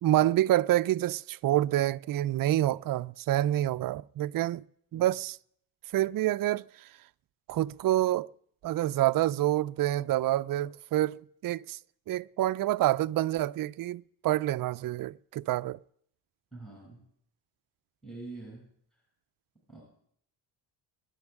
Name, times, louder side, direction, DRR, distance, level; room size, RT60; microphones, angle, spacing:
voice 1, 0.0-4.6 4.9-5.4 5.9-6.9 7.5-8.3 8.6-11.8 12.1-15.8, right 14 dB, 45° right, 0.5 m, -27 dB
voice 2, 16.5-17.0 18.0-18.6 19.7-19.8, right 3 dB, ahead, 7.5 m, -44 dB
24.5 x 10.5 x 3.6 m
cardioid pair, 80°, 49 cm